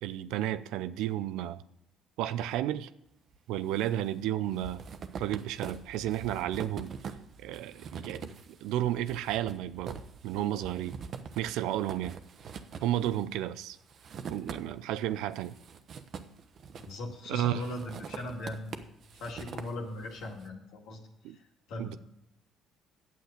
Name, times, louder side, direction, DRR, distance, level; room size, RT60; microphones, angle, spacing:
voice 1, 0.0-1.6 2.2-2.9 3.5-4.8 5.2-6.9 7.4-8.3 8.6-10.0 10.2-11.0 11.4-12.2 12.8-13.8 14.3-15.6 17.3-17.6 21.2-21.4 21.8-22.0, right 12 dB, 80° right, 14 dB, 0.5 m, -32 dB
sound 1, 3.3-3.9 4.2-15.0 15.3-17.2 17.6-20.3, right 6 dB, 55° right, 0.9 m, -44 dB
voice 2, 16.8-18.7 19.1-22.0, left 1 dB, 75° left, 1 dB, 2.2 m, -39 dB
9.3 x 7.8 x 6.6 m, 0.82 s
supercardioid pair, 65°, 0 cm